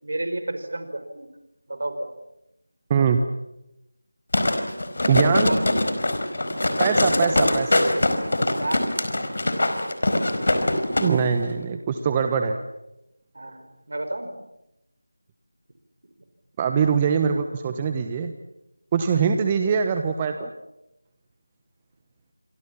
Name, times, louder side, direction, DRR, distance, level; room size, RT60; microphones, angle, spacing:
voice 1, 0.0-1.3 1.7-2.1 5.4-5.6 6.4-6.7 8.5-8.9 13.3-14.4 18.9-19.4, right 2 dB, 60° right, 8 dB, 5.1 m, -32 dB
voice 2, 2.9-3.2 5.1-5.5 6.8-7.8 11.0-12.6 16.6-18.3 18.9-20.5, right 6 dB, 20° right, 7 dB, 1.2 m, -22 dB
sound 1, 4.3-11.1 11.4-11.5, left 1 dB, 55° left, 4.5 m, -22 dB
28.5 x 25.0 x 7.2 m, 0.89 s
figure-of-eight pair, 165°, 0 cm